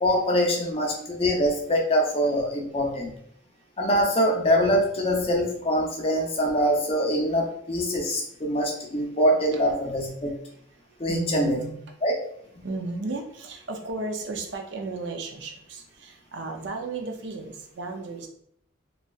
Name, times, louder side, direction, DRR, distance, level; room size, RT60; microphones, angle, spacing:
voice 1, 0.0-3.1 3.8-10.4 11.0-11.6 12.0-12.1, equal, 30° left, 0 dB, 0.5 m, -24 dB
voice 2, 11.1-11.7 12.6-18.3, right 3 dB, 60° right, 3 dB, 0.5 m, -34 dB
3.1 x 2.6 x 2.3 m, 0.68 s
head